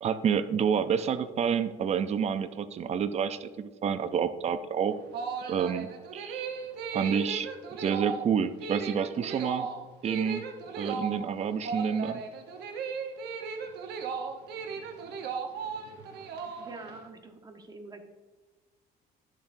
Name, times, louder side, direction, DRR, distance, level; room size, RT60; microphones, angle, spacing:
voice 1, 0.0-4.9 5.5-6.5 6.9-7.5 7.8-9.7 10.0-10.4 10.8-12.2, right 7 dB, 40° right, 11 dB, 0.5 m, -29 dB
sound 1, 4.9-17.0, right 5 dB, 75° right, 1.0 m, -36 dB
voice 2, 16.6-18.0, right 3 dB, 25° right, 5 dB, 1.1 m, -46 dB
11.5 x 7.3 x 2.6 m, 1.2 s
cardioid pair, 110°, 17 cm